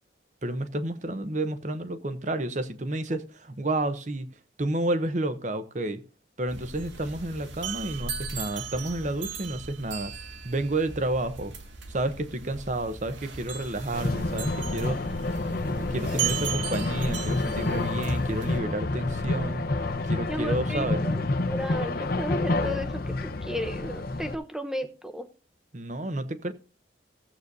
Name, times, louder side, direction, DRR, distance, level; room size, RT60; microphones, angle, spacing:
voice 1, 0.4-4.3 4.6-6.0 6.4-10.1 10.4-11.5 11.9-15.1 15.8-21.1 25.7-26.5, right 1 dB, 40° right, 0.8 m, -30 dB
sound 1, 6.5-18.6, right 7 dB, 75° right, 1.9 m, -37 dB
sound 2, 13.9-24.3, left 2 dB, 50° left, 0.8 m, -29 dB
voice 2, 20.3-21.2 21.5-25.3, equal, 5° right, 0.8 m, -34 dB
16.0 x 8.1 x 2.7 m
head